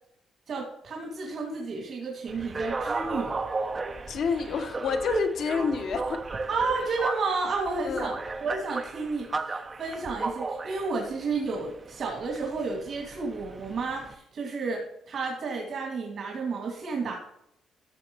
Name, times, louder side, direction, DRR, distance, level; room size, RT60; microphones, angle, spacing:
voice 1, 0.5-3.4 6.5-17.2, right 4 dB, 60° right, -1 dB, 2.4 m, -32 dB
sound 1, 2.3-14.1, right 3 dB, 35° right, 0.7 m, -35 dB
voice 2, 4.1-6.2 7.8-8.2, left 5 dB, 65° left, 6 dB, 1.2 m, -28 dB
14.5 x 6.4 x 3.1 m, 0.77 s
cardioid pair, 90°, 0 cm